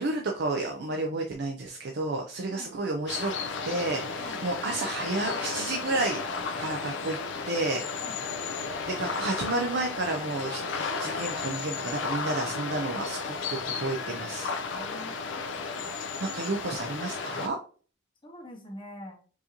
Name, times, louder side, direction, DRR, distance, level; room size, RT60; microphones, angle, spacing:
voice 1, 0.0-3.3 3.6-6.2 6.6-7.2 7.5-8.0 8.9-14.5 16.2-17.6, right 2 dB, 55° right, 1 dB, 0.5 m, -31 dB
sound 1, 3.1-17.5, left 4 dB, 65° left, 0.4 m, -34 dB
voice 2, 14.2-15.3 18.2-19.2, left 1 dB, 25° left, 2 dB, 0.8 m, -45 dB
4.7 x 2.6 x 2.9 m, 0.40 s
head